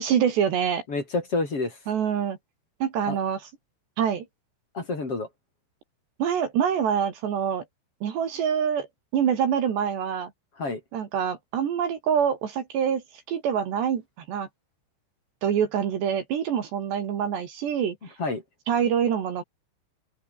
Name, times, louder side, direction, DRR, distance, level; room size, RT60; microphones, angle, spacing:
voice 1, 0.0-0.8 1.9-2.4 2.8-3.4 4.0-4.3 6.2-7.6 8.0-8.9 9.1-10.3 10.9-14.0 14.3-14.5 15.4-18.0 18.7-19.4, right 8 dB, 60° right, 4.3 m, -25 dB
voice 2, 0.9-1.8 3.1-3.2 4.7-5.3 10.6-10.8 18.2-18.4, left 3 dB, 30° left, 4.6 m, -28 dB
omnidirectional pair, 5.9 m